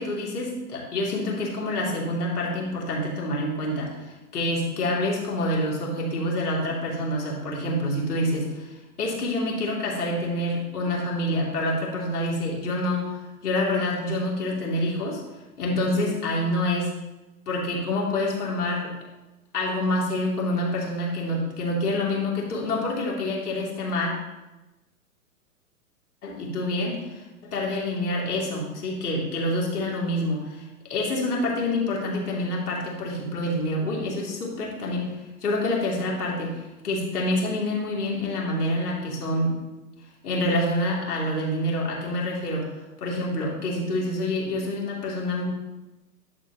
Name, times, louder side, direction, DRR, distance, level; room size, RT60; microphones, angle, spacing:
voice 1, 0.0-13.1 13.4-15.2 15.6-16.9 17.5-18.9 19.5-24.1 26.2-35.1 35.4-39.5 40.2-42.7 43.0-45.4, left 1 dB, 80° left, -3 dB, 2.9 m, -27 dB
11.0 x 6.4 x 3.0 m, 1.1 s
hypercardioid pair, 125°, 46 cm